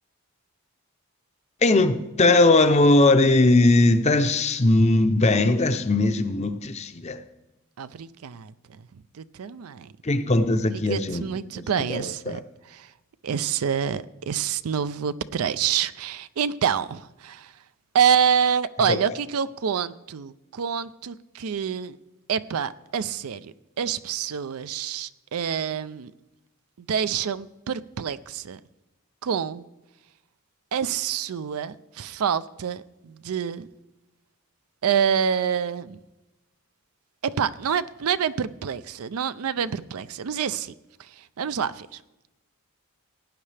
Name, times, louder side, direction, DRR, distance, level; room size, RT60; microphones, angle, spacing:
voice 1, 1.6-7.2 10.0-12.0 12.3-12.4 18.9-19.0, left 2 dB, 30° left, 0.6 m, -20 dB
voice 2, 7.8-8.8 9.1-9.9 10.9-12.4 12.7-12.9 13.2-17.5 17.9-22.0 22.3-26.1 26.8-28.6 29.2-29.6 30.7-33.7 34.8-36.0 37.2-40.7 41.0-42.0, right 7 dB, 80° right, 0.4 m, -27 dB
17.5 x 9.6 x 3.3 m
head